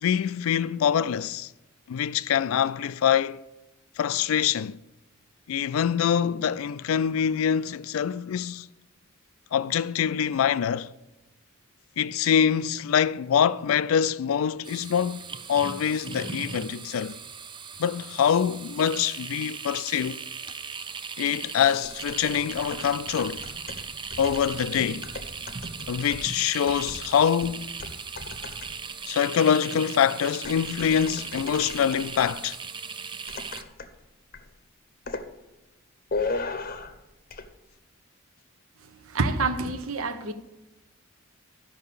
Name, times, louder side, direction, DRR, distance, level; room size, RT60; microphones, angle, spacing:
voice 1, 0.0-1.5 1.9-3.4 4.0-4.8 5.5-8.7 9.5-10.9 12.0-15.2 15.5-17.2 17.8-20.2 21.2-23.4 24.2-25.1 25.9-27.8 29.1-32.6, left 8 dB, 75° left, 0.3 m, -25 dB
sound 1, 14.6-33.6, right 5 dB, 25° right, 0.4 m, -38 dB
sound 2, 21.8-28.9 30.4-32.5 33.3-34.0 34.3-34.6 35.1-35.3 36.1-37.0 37.3-37.5, left 3 dB, 40° left, 0.7 m, -37 dB
voice 2, 39.0-40.3, right 3 dB, 85° right, 0.9 m, -27 dB
11.5 x 5.5 x 6.8 m
head